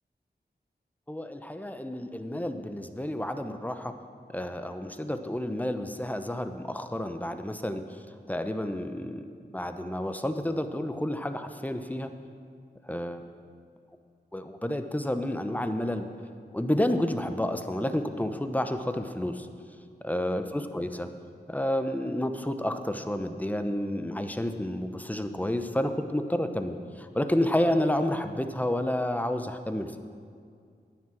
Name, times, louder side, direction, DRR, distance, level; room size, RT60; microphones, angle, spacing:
voice 1, 1.1-3.9 4.3-7.8 8.3-9.3 9.5-12.1 12.9-13.2 14.3-16.1 16.5-19.5 20.0-21.1 21.5-29.9, left 1 dB, 10° left, 8 dB, 0.8 m, -30 dB
10.5 x 9.4 x 6.2 m, 2.2 s
wide cardioid pair, 50°, 18 cm